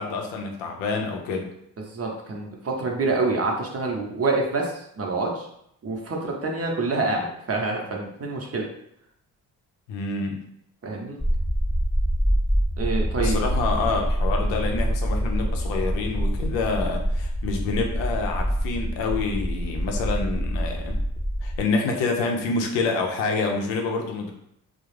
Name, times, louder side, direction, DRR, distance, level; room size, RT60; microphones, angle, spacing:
voice 1, 0.0-1.5 9.9-10.4 13.2-21.0 21.4-24.3, left 4 dB, 85° left, 2 dB, 0.5 m, -27 dB
voice 2, 1.9-5.5 5.8-8.7 10.8-11.2 12.8-13.4, right 3 dB, 35° right, 0 dB, 0.7 m, -27 dB
sound 1, 11.2-21.6, equal, 5° left, 0.5 m, -25 dB
2.3 x 2.0 x 3.1 m, 0.73 s
supercardioid pair, 50°, 42 cm